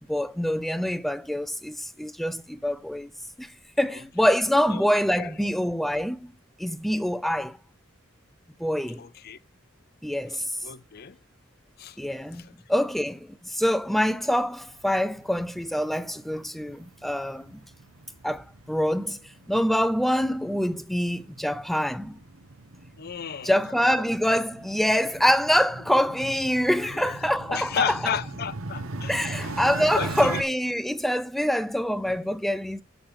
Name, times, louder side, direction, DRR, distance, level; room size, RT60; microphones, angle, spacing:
voice 1, 0.1-3.1 3.4-3.5 3.8-6.3 6.6-7.6 8.6-9.0 10.0-10.5 12.0-12.4 12.7-17.6 18.2-19.2 19.5-22.2 23.4-28.1 29.1-32.8, equal, ahead, 0.5 m, -25 dB
voice 2, 9.0-9.4 10.6-11.2 11.8-12.0 12.3-12.5 23.0-23.5 26.8-27.2 27.5-29.6 29.9-30.4, left 7 dB, 50° left, 0.6 m, -33 dB
sound 1, 14.6-30.4, right 2 dB, 85° right, 1.1 m, -40 dB
7.2 x 6.7 x 5.7 m
head